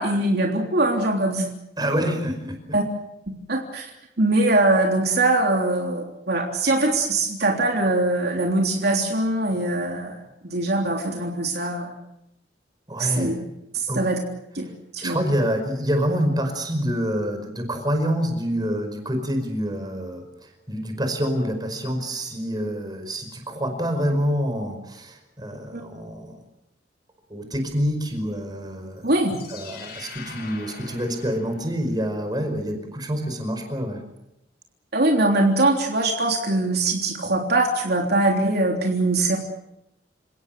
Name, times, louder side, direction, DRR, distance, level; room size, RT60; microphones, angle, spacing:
voice 1, 0.0-1.5 2.7-2.8 3.5-3.9 4.2-10.2 10.4-11.9 13.0-13.3 13.7-14.2 14.5-14.7 14.9-15.2 25.7-25.8 29.0-29.4 34.9-39.4, right 2 dB, 60° right, 1 dB, 3.4 m, -22 dB
voice 2, 1.8-2.8 12.9-13.4 13.9-14.0 14.6-14.7 15.0-26.4 27.3-29.1 29.5-34.0, equal, 20° right, 6 dB, 5.1 m, -27 dB
sound 1, 29.0-32.1, left 5 dB, 55° left, 6.9 m, -43 dB
29.5 x 18.0 x 7.8 m, 0.85 s
head